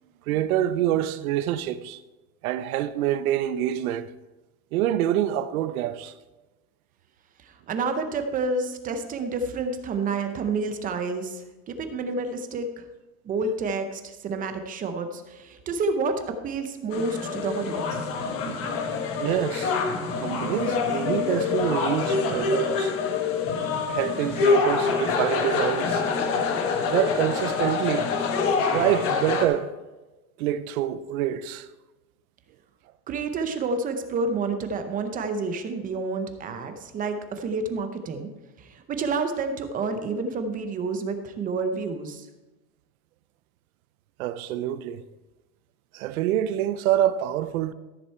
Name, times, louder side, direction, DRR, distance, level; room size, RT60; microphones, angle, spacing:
voice 1, 0.3-2.0 2.4-4.1 4.7-6.1 18.5-18.6 19.2-19.8 20.1-22.9 23.9-26.0 26.9-28.1 28.6-29.7 30.4-31.7 44.2-45.0 45.9-47.7, right 12 dB, 85° right, 0.8 m, -26 dB
voice 2, 7.4-12.8 13.2-18.1 33.1-38.3 38.6-42.3, right 3 dB, 20° right, 0.7 m, -29 dB
sound 1, 16.9-29.5, left 5 dB, 35° left, 1.1 m, -26 dB
13.5 x 6.7 x 4.4 m
supercardioid pair, 160°, 42 cm